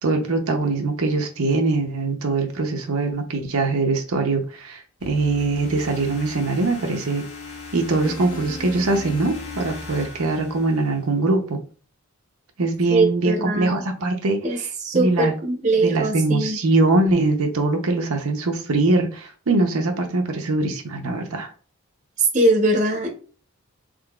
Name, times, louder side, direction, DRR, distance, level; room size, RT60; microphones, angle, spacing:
voice 1, 0.0-7.2 7.7-11.6 12.6-14.4 14.9-15.3 15.8-21.5, right 2 dB, 80° right, 0.7 m, -22 dB
sound 1, 5.0-11.2, left 2 dB, 80° left, 1.1 m, -38 dB
voice 2, 12.9-13.8 14.4-16.6 22.2-23.1, right 2 dB, 35° right, 0.8 m, -21 dB
3.8 x 3.3 x 2.3 m
head